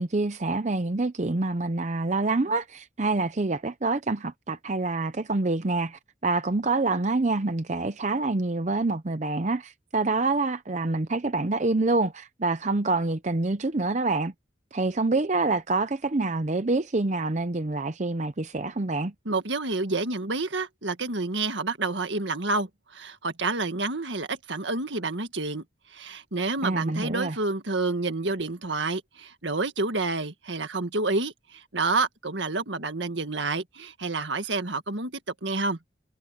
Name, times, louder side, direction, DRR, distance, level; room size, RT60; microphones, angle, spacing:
voice 1, 0.0-14.3 14.7-19.1 26.6-27.4, right 3 dB, 40° right, 0.6 m, -26 dB
voice 2, 19.3-25.6 25.9-35.8, right 3 dB, 75° right, 1.8 m, -29 dB
head